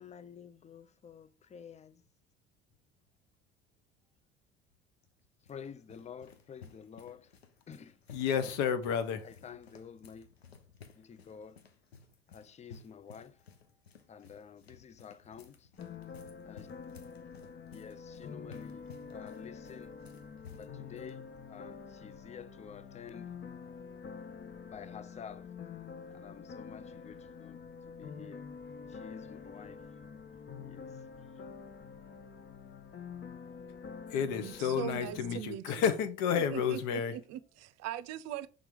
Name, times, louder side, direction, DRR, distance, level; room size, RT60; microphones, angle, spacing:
voice 1, 0.0-2.0 5.4-7.3 7.7-8.0 8.3-8.5 9.2-10.3 11.0-11.6 12.3-13.4 14.1-15.7 16.4-16.7 17.7-20.0 20.6-23.3 24.6-25.5 26.1-28.5 28.9-29.9 30.6-31.0, left 7 dB, 20° left, 0.5 m, -50 dB
sound 1, 5.0-21.1, left 6 dB, 90° left, 0.8 m, -56 dB
voice 2, 8.1-9.3 34.1-37.1, left 7 dB, 65° left, 1.1 m, -31 dB
sound 2, 15.8-35.4, left 6 dB, 40° left, 1.0 m, -47 dB
voice 3, 34.4-35.8 36.4-38.5, right 12 dB, 55° right, 0.6 m, -41 dB
5.9 x 3.7 x 5.1 m
figure-of-eight pair, 55°, 30 cm